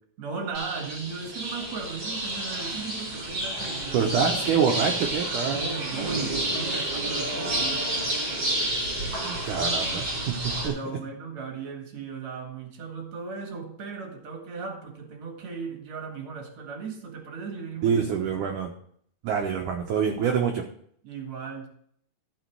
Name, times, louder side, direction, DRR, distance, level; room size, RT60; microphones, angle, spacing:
voice 1, 0.2-4.6 5.5-8.5 9.5-9.8 10.6-18.1 21.0-21.7, right 5 dB, 50° right, 2 dB, 2.5 m, -37 dB
sound 1, 0.5-10.7, right 1 dB, 30° right, 3.3 m, -30 dB
voice 2, 3.9-5.6 9.0-10.8 17.8-18.7 19.2-20.6, right 7 dB, 75° right, 2 dB, 1.9 m, -26 dB
14.5 x 6.3 x 4.7 m, 0.63 s
omnidirectional pair, 5.0 m